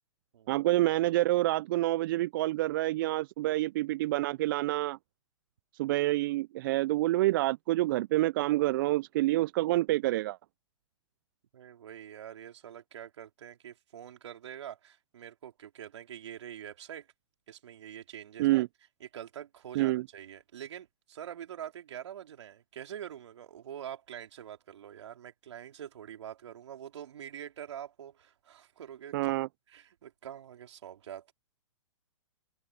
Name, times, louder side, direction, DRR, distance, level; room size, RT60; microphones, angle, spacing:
voice 1, 0.5-5.0 5.8-10.4 18.4-18.7 19.8-20.0 29.1-29.5, right 17 dB, 45° right, 0.5 m, -27 dB
voice 2, 11.5-17.1 17.5-18.7 19.0-29.3 29.7-31.3, right 10 dB, 65° right, 4.3 m, -45 dB
hypercardioid pair, 125°, 16 cm